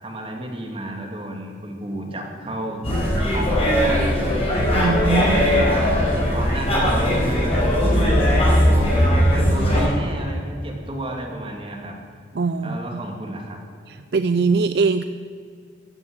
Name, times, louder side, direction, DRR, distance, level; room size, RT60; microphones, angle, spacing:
voice 1, 0.0-2.9 3.3-4.2 5.5-5.9 6.3-7.5 7.9-11.9 12.6-13.6, right 1 dB, 30° right, 0 dB, 2.5 m, -32 dB
sound 1, 2.8-9.9, equal, 30° left, 4.6 m, -19 dB
sound 2, 4.6-8.0, left 1 dB, 70° left, 1.2 m, -33 dB
voice 2, 4.7-5.7 12.3-13.0 13.9-15.0, right 4 dB, 55° right, 11 dB, 0.4 m, -22 dB
15.5 x 9.7 x 8.0 m, 2.3 s
head